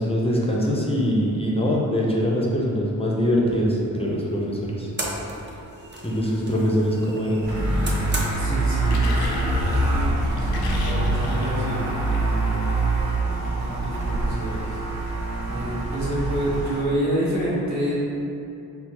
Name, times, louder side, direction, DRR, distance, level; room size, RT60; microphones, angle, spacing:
voice 1, 0.0-4.9 6.0-7.5, equal, 15° left, -4 dB, 0.5 m, -23 dB
sound 1, 4.0-14.6, right 1 dB, 30° right, 0.6 m, -39 dB
sound 2, 7.4-16.8, right 2 dB, 85° right, 1.0 m, -24 dB
sound 3, 7.9-12.4 13.2-13.4, left 3 dB, 90° left, 0.5 m, -39 dB
voice 2, 8.3-12.8 13.3-14.8 15.5-17.9, right 1 dB, 50° right, -8 dB, 1.1 m, -29 dB
4.2 x 2.0 x 2.9 m, 2.7 s
cardioid pair, 70°, 37 cm